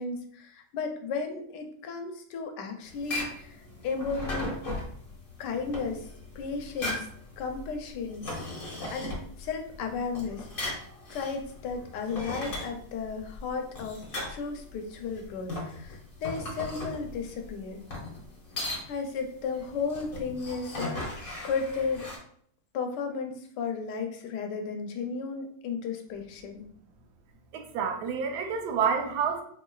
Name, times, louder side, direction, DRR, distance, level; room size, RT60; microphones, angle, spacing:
voice 1, 0.0-3.5 3.8-4.6 5.4-6.0 6.4-7.0 7.4-8.2 8.9-10.5 11.1-14.0 14.3-17.8 18.9-22.1 22.7-26.7, left 5 dB, 80° left, 5 dB, 1.2 m, -34 dB
sound 1, 2.8-22.2, left 2 dB, 40° left, 1.0 m, -38 dB
voice 2, 27.5-29.4, right 6 dB, 75° right, 3 dB, 1.2 m, -28 dB
4.1 x 3.1 x 2.3 m, 0.62 s
omnidirectional pair, 1.8 m